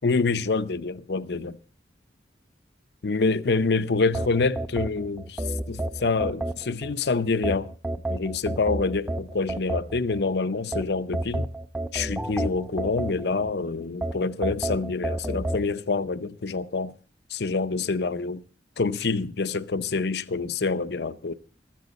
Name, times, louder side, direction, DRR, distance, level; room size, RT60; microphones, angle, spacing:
voice 1, 0.0-1.6 3.0-5.4 5.7-7.7 8.1-11.5 11.9-16.9 17.3-18.4 18.8-21.3, left 4 dB, 65° left, 0.6 m, -26 dB
sound 1, 4.1-6.9 7.4-10.2 10.7-13.5 14.0-15.6, right 1 dB, 10° right, 0.6 m, -30 dB
15.0 x 13.5 x 4.0 m
head